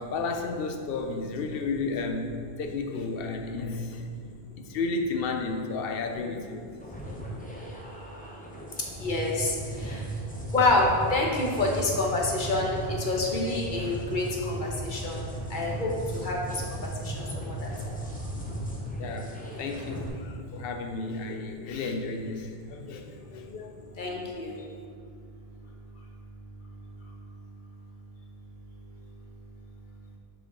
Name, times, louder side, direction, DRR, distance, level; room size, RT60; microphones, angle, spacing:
voice 1, 0.0-6.7 15.0-15.8 17.1-17.2 18.4-18.7 19.0-23.9, left 3 dB, 70° left, 5 dB, 0.8 m, -33 dB
sound 1, 6.8-20.1, right 1 dB, 10° left, 0.7 m, -36 dB
voice 2, 9.0-9.5 9.8-10.0 10.5-12.7 13.0-15.2 15.5-16.4 17.0-17.1 17.4-17.7 24.0-24.5, left 2 dB, 55° left, -1 dB, 1.0 m, -27 dB
6.3 x 4.6 x 3.7 m, 2.3 s
omnidirectional pair, 1.0 m